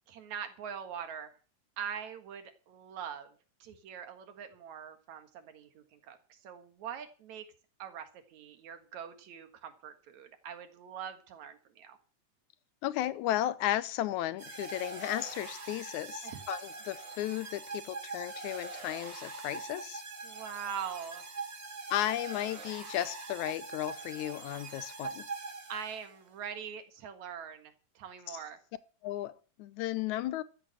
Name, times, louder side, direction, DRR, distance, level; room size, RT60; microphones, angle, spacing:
voice 1, 0.1-1.3 1.8-3.3 3.6-7.5 7.8-12.0 16.2-16.4 20.2-21.2 25.7-28.6, right 8 dB, 75° right, 3.0 m, -43 dB
voice 2, 12.8-20.0 21.9-25.3 28.3-28.4 29.0-30.4, left 14 dB, 85° left, 2.2 m, -34 dB
sound 1, 14.4-26.2, right 3 dB, 40° right, 3.1 m, -43 dB
13.5 x 7.5 x 7.7 m
omnidirectional pair, 3.3 m